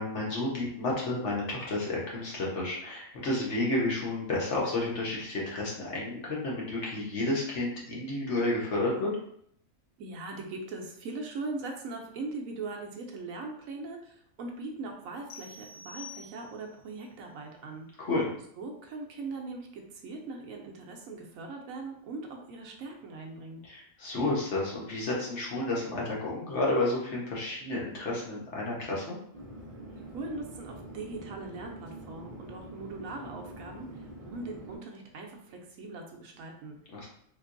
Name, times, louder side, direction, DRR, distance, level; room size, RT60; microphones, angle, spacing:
voice 1, 0.0-9.1 18.0-18.3 23.6-29.2 36.9-37.1, left 2 dB, 60° left, -4 dB, 1.1 m, -31 dB
voice 2, 10.0-18.1 18.6-23.6 30.1-37.1, right 3 dB, 75° right, 1 dB, 1.0 m, -40 dB
sound 1, 15.3-16.8, left 4 dB, 80° left, 0.4 m, -47 dB
Chatter / Fixed-wing aircraft airplane, 29.3-34.8, right 1 dB, 35° right, 0.7 m, -45 dB
3.3 x 2.9 x 2.5 m, 0.67 s
omnidirectional pair, 1.5 m